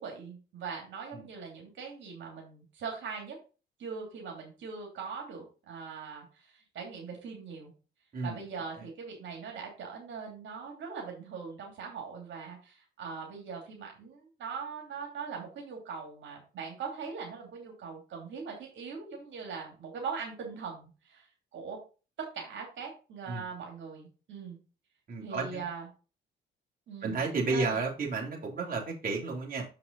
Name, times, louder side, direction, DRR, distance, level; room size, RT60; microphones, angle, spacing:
voice 1, 0.0-3.4 3.8-7.7 8.2-21.3 21.5-21.8 22.2-24.6 25.2-25.8 26.9-27.1 27.5-27.8, right 5 dB, 70° right, 0 dB, 2.9 m, -41 dB
voice 2, 25.1-25.6 27.0-29.7, right 3 dB, 45° right, -2 dB, 3.2 m, -32 dB
6.9 x 5.8 x 4.0 m, 0.33 s
cardioid pair, 90°, 20 cm